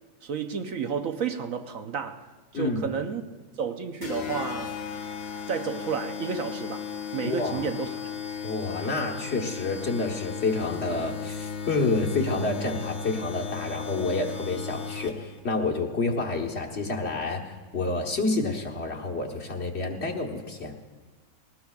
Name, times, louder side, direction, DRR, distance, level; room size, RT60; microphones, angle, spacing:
voice 1, 0.2-2.3 2.5-3.2 3.6-4.8 5.5-6.9 7.1-8.0, right 6 dB, 65° right, 1.1 m, -31 dB
sound 1, 4.0-15.4, left 6 dB, 60° left, 1.5 m, -36 dB
voice 2, 7.2-7.7 8.4-20.7, left 3 dB, 45° left, 1.4 m, -29 dB
21.0 x 17.5 x 2.4 m
omnidirectional pair, 1.7 m